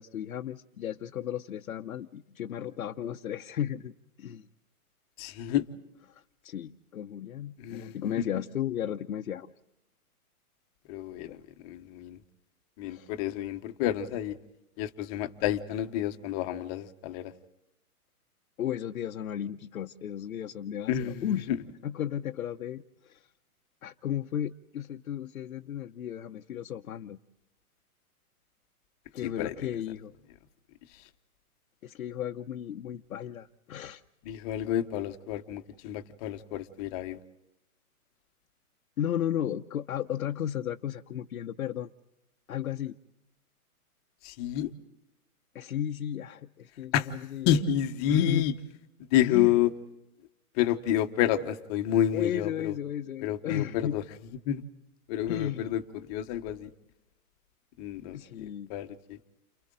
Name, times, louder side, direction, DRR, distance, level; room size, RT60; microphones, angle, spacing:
voice 1, 0.0-3.9 4.2-4.4 6.1-9.5 11.3-11.4 12.8-13.1 18.6-21.5 21.8-23.3 23.8-27.2 29.1-30.1 31.8-34.0 39.0-41.9 42.5-43.0 45.5-47.6 48.1-48.5 49.2-49.6 52.1-54.0 55.3-55.7 58.1-58.7, left 10 dB, 70° left, 1.0 m, -34 dB
voice 2, 5.2-5.7 7.6-8.2 10.9-11.4 11.6-12.2 12.8-14.4 14.8-17.3 20.9-21.3 29.2-29.5 34.2-37.2 44.2-44.7 46.9-47.1 47.5-48.5 49.1-49.7 50.6-52.7 53.2-54.0 54.5-54.6 55.1-55.8 56.1-56.7 57.8-58.4 58.7-59.2, left 11 dB, 25° left, 1.2 m, -29 dB
30.0 x 28.5 x 3.8 m
hypercardioid pair, 145°, 45 cm